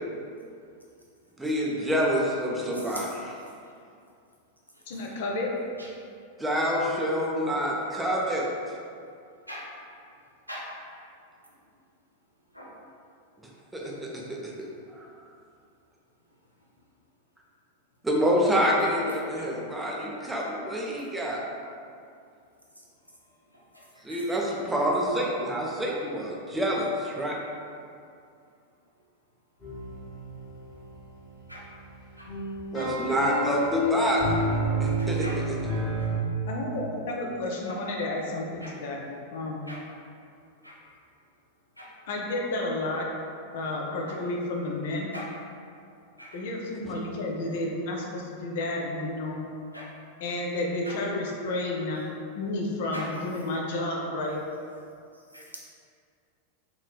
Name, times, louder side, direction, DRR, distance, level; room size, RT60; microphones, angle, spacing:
voice 1, 1.4-3.1 6.4-8.5 13.7-14.5 14.9-15.1 18.0-21.4 24.0-27.4 32.7-34.3 34.8-35.3, equal, 10° right, -3 dB, 0.5 m, -27 dB
voice 2, 2.7-3.0 4.7-4.8 5.8-5.9 9.5-9.7 10.5-10.7 11.5-11.6 12.5-12.8 19.3-19.5 22.8-22.9 23.5-24.2 31.5-31.7 32.2-32.3 32.9-33.0 35.0-35.4 36.0-36.1 37.7-37.8 38.6-38.8 39.7-39.8 40.6-40.8 41.8-41.9 44.1-44.2 45.1-45.3 46.2-46.4 49.7-49.9 50.8-51.0 52.9-53.1 55.1-55.6, equal, 90° right, -4 dB, 0.5 m, -43 dB
voice 3, 4.9-5.6 36.5-39.0 39.3-39.7 42.1-43.1 43.5-45.1 46.3-49.5 50.2-52.1 52.4-54.4, left 2 dB, 55° left, -1 dB, 0.5 m, -31 dB
sound 1, 29.6-36.2, equal, 35° left, 1.2 m, -29 dB
3.1 x 3.1 x 2.2 m, 2.4 s
figure-of-eight pair, 90°, 0 cm